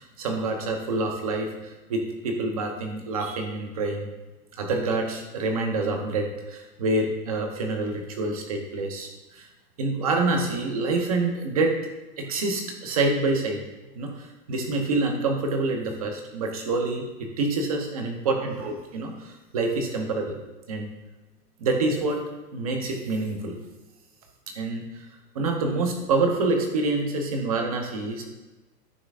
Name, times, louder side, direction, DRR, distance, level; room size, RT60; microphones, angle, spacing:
voice 1, 0.0-4.1 4.6-9.5 9.8-11.8 12.2-13.6 13.9-20.4 20.7-20.9 21.6-22.2 22.5-23.6 24.5-25.1 25.3-28.2, right 3 dB, 25° right, 3 dB, 0.7 m, -27 dB
13.5 x 5.6 x 2.4 m, 1.1 s
hypercardioid pair, 180°, 48 cm